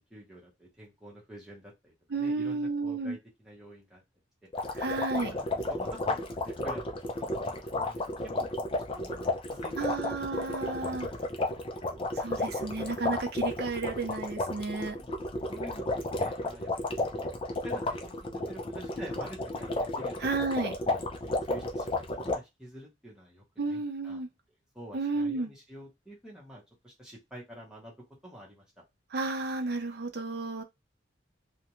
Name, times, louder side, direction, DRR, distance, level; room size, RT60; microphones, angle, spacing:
voice 1, 0.0-4.0 4.4-4.5 5.1-5.4 5.7-6.9 7.2-9.9 11.9-12.0 13.4-13.6 15.0-15.1 15.5-18.1 18.5-20.5 20.8-20.9 21.2-24.2 24.7-28.6, equal, 5° right, 0.9 m, -48 dB
voice 2, 2.1-3.2 4.7-5.3 9.8-11.1 12.2-15.0 20.2-20.7 23.6-24.3 24.9-25.5 29.1-30.6, right 3 dB, 60° right, 0.6 m, -32 dB
sound 1, 4.5-22.4, left 2 dB, 30° left, 0.4 m, -33 dB
2.5 x 2.2 x 2.9 m
head